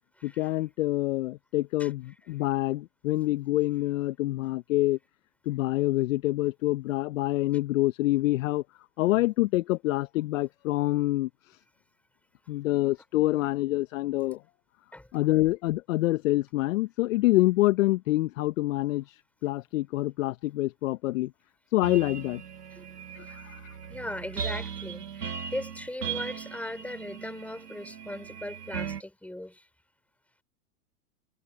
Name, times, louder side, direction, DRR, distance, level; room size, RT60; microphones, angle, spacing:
voice 1, 0.2-5.0 5.5-8.6 9.0-11.3 12.5-14.4 15.1-19.0 19.4-21.3 21.7-22.4 23.1-23.8, left 18 dB, 55° left, 0.9 m, -26 dB
sound 1, 21.8-29.0, right 7 dB, 90° right, 2.2 m, -38 dB
voice 2, 23.9-29.6, left 1 dB, 5° left, 5.7 m, -38 dB
hypercardioid pair, 110°, 46 cm